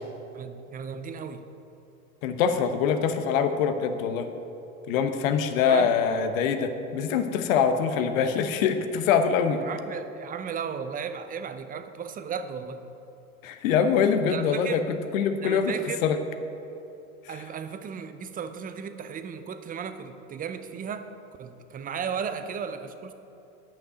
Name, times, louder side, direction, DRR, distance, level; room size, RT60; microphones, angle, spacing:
voice 1, 0.3-1.4 5.7-5.9 9.6-12.9 14.3-14.9 15.4-16.0 17.3-21.1 21.4-23.1, right 7 dB, 20° right, 10 dB, 0.6 m, -35 dB
voice 2, 2.2-4.3 4.9-9.6 13.4-14.8 15.1-15.7 16.0-16.2 17.2-17.4, left 7 dB, 65° left, 8 dB, 1.0 m, -24 dB
8.9 x 5.8 x 7.9 m, 2.9 s
hypercardioid pair, 95°, 42 cm